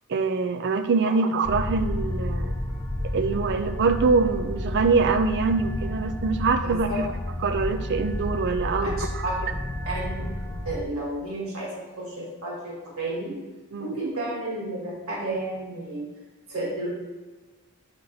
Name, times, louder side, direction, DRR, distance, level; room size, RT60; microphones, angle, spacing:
voice 1, 0.1-2.5 3.1-7.1 7.4-9.2 13.7-14.0, right 4 dB, 50° right, 9 dB, 0.4 m, -24 dB
sound 1, 1.4-10.8, left 1 dB, 15° left, 0.4 m, -31 dB
voice 2, 6.6-7.0 8.8-8.9 9.2-9.3 9.9-10.1 10.6-13.3 13.8-16.0 16.5-16.9, right 1 dB, 65° right, -4 dB, 2.1 m, -32 dB
5.3 x 4.0 x 5.6 m, 1.3 s
head